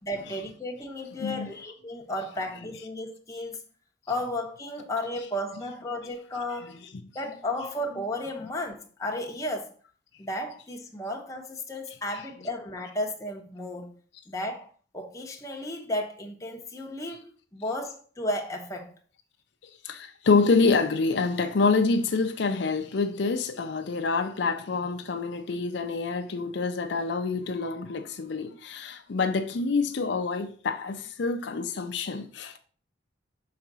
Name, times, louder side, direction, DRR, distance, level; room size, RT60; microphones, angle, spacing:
voice 1, 0.0-3.6 4.1-6.8 7.1-9.7 10.2-13.9 14.3-18.9, left 1 dB, 15° left, 0.9 m, -34 dB
voice 2, 1.2-1.5 19.8-32.6, left 4 dB, 65° left, 0.5 m, -26 dB
5.8 x 3.9 x 6.0 m
head